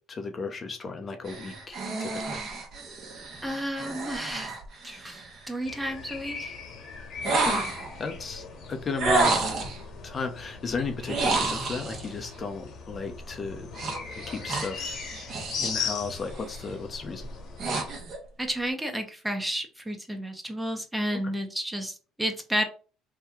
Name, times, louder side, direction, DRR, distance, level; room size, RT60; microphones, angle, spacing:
voice 1, 0.1-2.4 7.2-7.6 8.0-9.5 10.0-13.7 14.3-15.0 15.6-17.2 21.1-21.2, left 4 dB, 40° left, 5 dB, 0.6 m, -35 dB
sound 1, 1.2-5.5 7.2-8.0 9.0-9.8 11.0-12.1 13.7-15.8 16.2-16.6 17.1-18.2, right 3 dB, 50° right, 1.0 m, -30 dB
voice 2, 3.4-4.5 4.8-6.5 18.4-22.6, equal, 10° right, 5 dB, 0.7 m, -31 dB
sound 2, 5.6-18.0, left 5 dB, 55° left, 1.2 m, -39 dB
2.8 x 2.2 x 3.6 m, 0.36 s
supercardioid pair, 80°, 0 cm